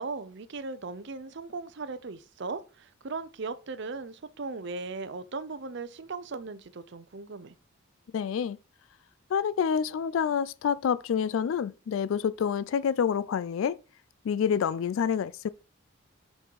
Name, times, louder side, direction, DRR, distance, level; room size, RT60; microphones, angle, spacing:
voice 1, 0.0-7.5, right 4 dB, 55° right, 0.6 m, -38 dB
voice 2, 8.1-8.6 9.3-13.8 14.2-15.5, left 7 dB, 70° left, 0.3 m, -27 dB
5.9 x 5.4 x 4.6 m
head